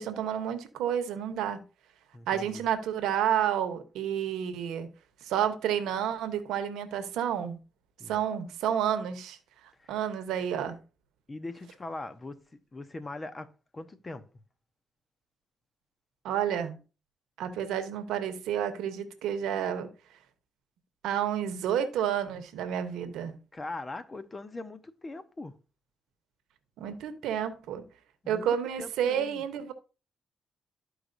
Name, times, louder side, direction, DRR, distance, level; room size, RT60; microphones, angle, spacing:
voice 1, 0.0-1.6 2.3-4.9 5.2-7.6 8.1-9.4 9.9-10.8 16.2-16.8 17.4-19.9 21.0-23.3 26.8-27.8 28.3-29.7, right 9 dB, 85° right, 1.0 m, -30 dB
voice 2, 2.1-2.6 8.0-8.2 9.8-10.0 11.3-12.4 12.7-14.3 23.5-25.6 28.2-28.5 28.8-29.4, left 2 dB, 30° left, 1.0 m, -41 dB
12.5 x 4.8 x 2.6 m
supercardioid pair, 60°, 0 cm